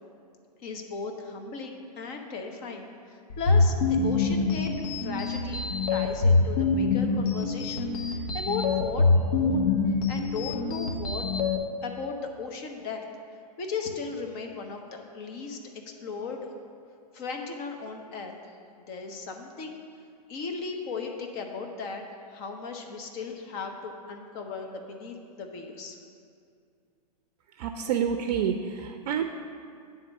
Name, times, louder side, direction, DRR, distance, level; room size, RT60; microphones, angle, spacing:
voice 1, 0.6-4.7 5.0-11.2 11.8-13.0 13.3-15.6 15.9-16.5 17.1-18.5 18.9-19.8 20.3-22.0 22.3-26.0, left 4 dB, 40° left, 3 dB, 1.0 m, -37 dB
sound 1, 3.3-11.6, left 3 dB, 70° left, 1.0 m, -25 dB
voice 2, 27.6-29.2, right 8 dB, 50° right, 6 dB, 0.5 m, -28 dB
9.6 x 3.7 x 6.4 m, 2.3 s
hypercardioid pair, 120°, 21 cm